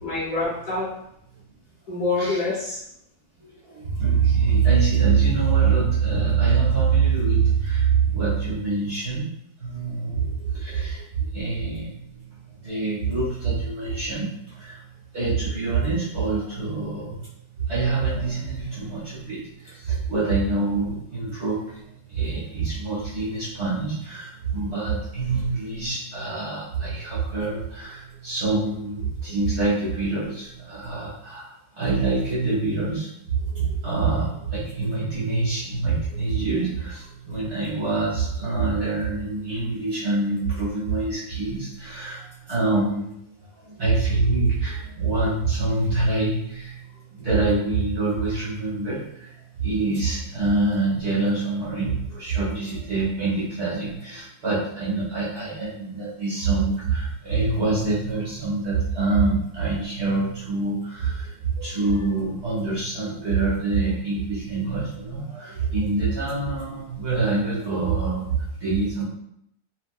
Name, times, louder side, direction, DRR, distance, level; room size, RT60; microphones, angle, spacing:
voice 1, 0.0-0.9 1.9-2.8, left 3 dB, 60° left, -7 dB, 1.0 m, -26 dB
voice 2, 3.4-9.3 9.6-12.2 12.6-14.8 15.1-17.2 17.6-21.8 22.1-43.1 43.6-49.3 49.6-69.0, right 4 dB, 45° right, -8 dB, 1.2 m, -25 dB
3.4 x 2.6 x 2.3 m, 0.76 s
omnidirectional pair, 1.9 m